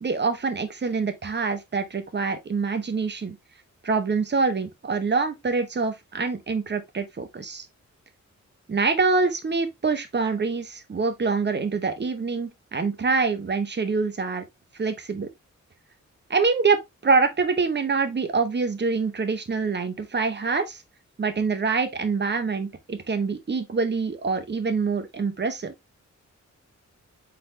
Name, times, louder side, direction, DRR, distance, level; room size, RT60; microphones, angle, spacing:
voice 1, 0.0-3.4 3.8-7.7 8.7-14.4 14.8-15.3 16.3-20.8 21.2-25.7, right 4 dB, 35° right, 0.8 m, -25 dB
4.5 x 3.9 x 2.6 m
wide cardioid pair, 110°, 30 cm